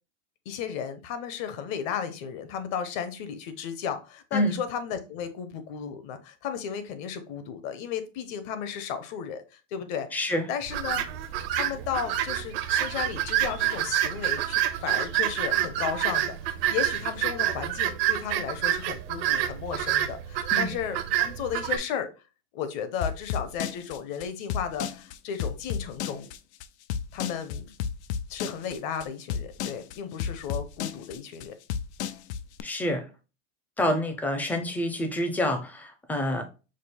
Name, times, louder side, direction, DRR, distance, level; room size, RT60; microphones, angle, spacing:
voice 1, 0.5-10.2 10.5-11.0 11.5-22.1 22.5-26.3 27.1-27.7 28.3-31.6, left 8 dB, 50° left, 0.8 m, -34 dB
voice 2, 10.1-10.5 20.5-20.7 32.6-33.1 33.8-36.4, left 1 dB, 5° left, 0.4 m, -27 dB
sound 1, 10.7-21.8, right 12 dB, 60° right, 0.6 m, -28 dB
sound 2, 23.0-32.6, left 8 dB, 90° left, 0.5 m, -32 dB
5.0 x 2.0 x 4.3 m
supercardioid pair, 150°, 33 cm